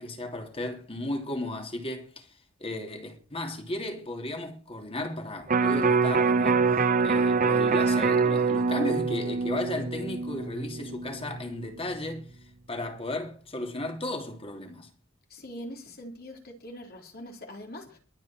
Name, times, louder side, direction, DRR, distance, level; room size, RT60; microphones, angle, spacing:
voice 1, 0.0-2.3 2.6-12.3 12.7-14.9, left 1 dB, 30° left, 3.0 m, -35 dB
Electric guitar, 5.5-11.7 12.1-12.2, right 4 dB, 40° right, 0.9 m, -25 dB
voice 2, 15.3-18.0, equal, 50° left, 3.8 m, -42 dB
22.5 x 8.5 x 4.5 m
head